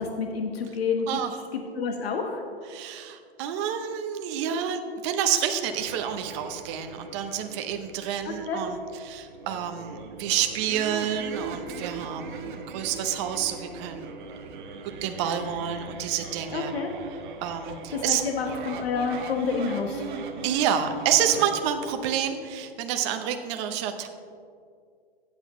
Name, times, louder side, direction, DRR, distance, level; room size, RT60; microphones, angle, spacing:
voice 1, 0.0-1.1 1.5-2.4 8.2-8.6 16.5-16.9 17.9-20.0, left 5 dB, 75° left, 3 dB, 1.2 m, -29 dB
voice 2, 1.1-1.4 2.7-8.8 9.0-14.1 15.0-16.7 17.4-18.2 20.4-24.1, right 9 dB, 30° right, 7 dB, 0.7 m, -28 dB
sound 1, 5.7-21.6, right 5 dB, 50° right, 1.1 m, -40 dB
15.0 x 8.1 x 3.1 m, 2.2 s
hypercardioid pair, 145°, 31 cm